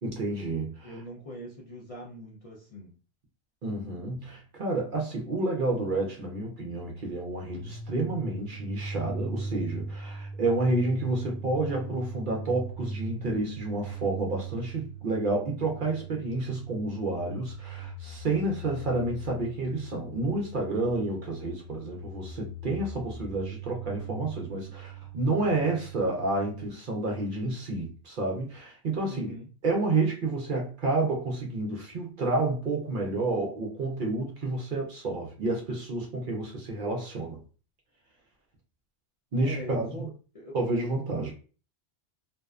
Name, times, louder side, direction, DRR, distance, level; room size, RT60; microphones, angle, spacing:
voice 1, 0.0-0.9 3.6-29.3 29.6-37.4 39.3-40.1 40.5-41.3, right 2 dB, 55° right, 0.7 m, -30 dB
voice 2, 0.8-2.9 29.0-29.5 39.4-40.1 40.3-40.5, equal, 45° left, 0.5 m, -42 dB
sound 1, 7.5-26.7, right 3 dB, ahead, 0.6 m, -40 dB
2.6 x 2.1 x 2.3 m
omnidirectional pair, 1.1 m